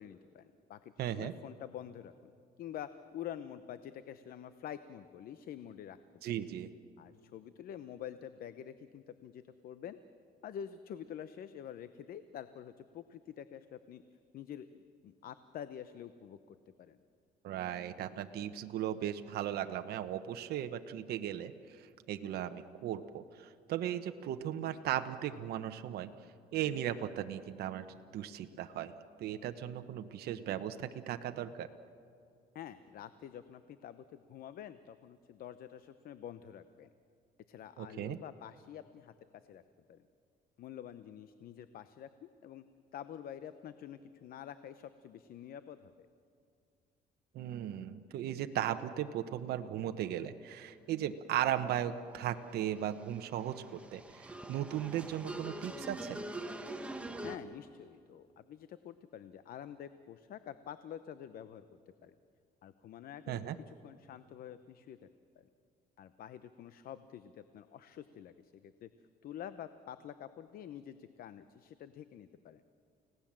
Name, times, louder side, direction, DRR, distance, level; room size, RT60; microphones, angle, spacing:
voice 1, 0.0-2.3 2.6-6.0 7.0-10.0 10.4-14.0 14.3-17.0 32.5-36.9 37.5-39.1 39.5-39.6 39.9-40.0 40.6-42.6 42.9-46.1 57.2-61.6 62.0-62.1 62.6-63.4 63.7-65.1 65.4-65.5 66.0-68.9 69.2-72.6, left 9 dB, 60° left, 12 dB, 0.8 m, -47 dB
voice 2, 1.0-1.3 6.2-6.7 17.4-21.8 22.1-26.1 26.5-27.9 28.1-28.9 29.2-31.7 37.8-38.2 47.3-56.2 63.3-63.6, right 11 dB, 70° right, 8 dB, 1.0 m, -37 dB
sound 1, 52.0-52.1 52.5-57.4, right 1 dB, 5° right, 1.5 m, -44 dB
30.0 x 17.5 x 7.5 m, 2.4 s
cardioid pair, 110°, 17 cm